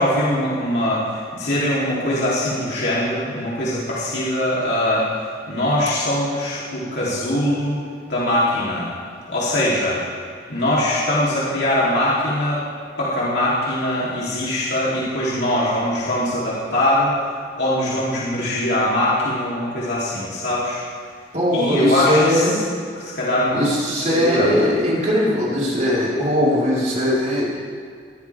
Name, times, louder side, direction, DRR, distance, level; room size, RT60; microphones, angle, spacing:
voice 1, 0.0-5.0 5.5-7.8 8.1-8.9 9.3-10.0 10.5-12.6 13.0-17.1 17.6-20.8 21.5-22.6 23.0-23.6 24.0-24.5, left 1 dB, 65° left, -8 dB, 3.4 m, -22 dB
voice 2, 21.3-22.6 23.5-27.5, left 1 dB, 40° right, -7 dB, 4.7 m, -20 dB
23.0 x 14.5 x 3.6 m, 2.2 s
head